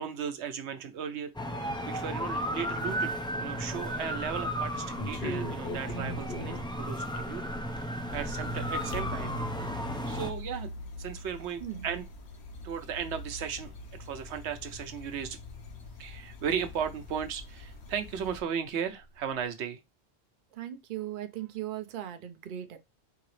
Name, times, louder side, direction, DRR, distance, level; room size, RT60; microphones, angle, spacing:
voice 1, 0.0-1.3 1.8-7.5 7.8-9.3 10.1-10.7 11.0-12.1 12.6-13.7 14.0-15.4 16.0-19.8, right 7 dB, 85° right, 1.0 m, -36 dB
sound 1, 1.4-10.3, equal, 5° left, 0.5 m, -34 dB
sound 2, 3.3-17.8 18.1-19.3, left 1 dB, 50° left, 1.4 m, -44 dB
sound 3, 8.1-18.4, left 1 dB, 75° left, 1.1 m, -43 dB
voice 2, 20.5-22.8, right 12 dB, 55° right, 0.7 m, -38 dB
4.7 x 2.9 x 3.0 m
omnidirectional pair, 1.1 m